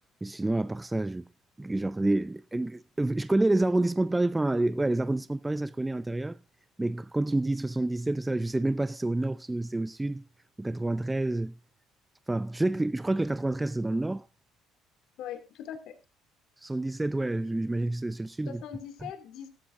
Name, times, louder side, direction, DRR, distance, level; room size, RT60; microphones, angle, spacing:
voice 1, 0.2-1.2 1.6-6.4 6.8-10.2 10.6-11.5 12.3-14.3 16.6-18.6, right 2 dB, 10° right, 0.5 m, -28 dB
voice 2, 15.2-15.9 18.4-19.5, left 9 dB, 70° left, 2.4 m, -41 dB
14.5 x 13.5 x 2.6 m
supercardioid pair, 90°, 0 cm